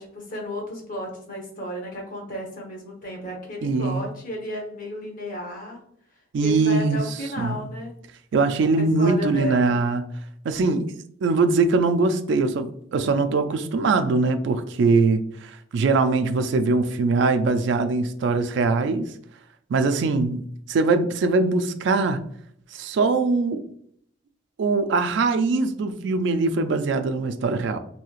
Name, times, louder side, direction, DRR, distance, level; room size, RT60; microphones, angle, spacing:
voice 1, 0.0-5.8 6.4-7.9 8.8-9.7 12.4-12.6, equal, 45° left, 0 dB, 0.9 m, -33 dB
voice 2, 3.6-4.1 6.3-7.0 7.4-7.6 8.3-10.0 10.4-10.9 11.2-19.1 19.7-20.4 20.7-22.2 22.7-23.6 24.6-27.8, right 3 dB, 60° right, 9 dB, 0.3 m, -22 dB
3.0 x 2.7 x 2.4 m, 0.65 s
head